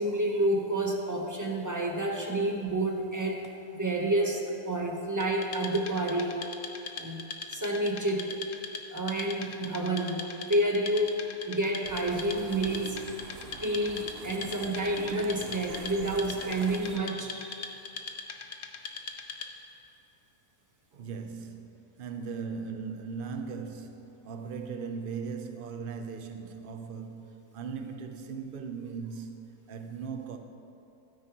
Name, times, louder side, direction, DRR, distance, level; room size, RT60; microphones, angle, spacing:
voice 1, 0.0-3.4 3.8-6.4 7.0-7.2 7.5-8.4 8.9-11.2 11.5-13.0 13.6-17.8, right 1 dB, 15° right, 0.8 m, -29 dB
Wood, 5.2-19.7, left 5 dB, 55° left, 0.9 m, -41 dB
sound 1, 11.8-17.0, right 7 dB, 85° right, 0.5 m, -44 dB
voice 2, 20.9-30.4, right 5 dB, 50° right, 0.7 m, -38 dB
16.5 x 9.5 x 3.0 m
omnidirectional pair, 1.7 m